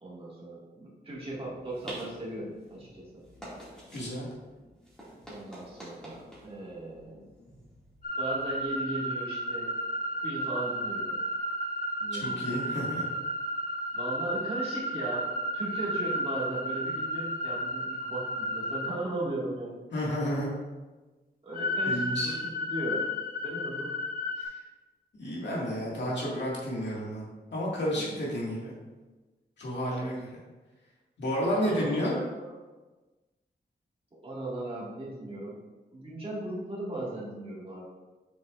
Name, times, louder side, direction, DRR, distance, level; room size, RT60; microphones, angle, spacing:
voice 1, 0.0-3.2 5.2-7.3 8.2-9.7 10.2-11.2 12.0-12.5 13.9-19.8 21.4-22.4 22.7-23.0 23.4-23.9 27.9-28.2 31.6-32.5 34.2-35.6 35.9-37.9, right 1 dB, 30° right, -6 dB, 1.8 m, -37 dB
sound 1, 1.1-8.7, right 1 dB, 5° left, 2.1 m, -48 dB
voice 2, 3.9-4.3 12.1-13.0 19.9-20.5 21.8-22.3 24.4-24.5 25.1-28.7 29.6-30.4 31.2-32.1, equal, 90° left, -5 dB, 2.0 m, -31 dB
sound 2, 8.0-18.9 21.5-24.5, equal, 55° left, 0.9 m, -32 dB
7.6 x 6.2 x 2.5 m, 1.2 s
wide cardioid pair, 155°, 18 cm